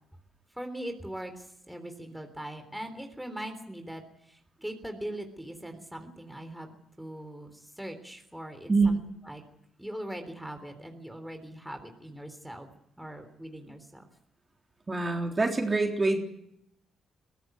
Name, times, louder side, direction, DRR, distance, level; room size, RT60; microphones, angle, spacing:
voice 1, 0.5-9.4 9.8-12.7 13.0-14.1, right 1 dB, ahead, 5 dB, 3.5 m, -41 dB
voice 2, 14.9-16.2, right 3 dB, 25° right, 3 dB, 3.6 m, -25 dB
22.5 x 15.0 x 9.4 m, 0.77 s
cardioid pair, 90°, 0 cm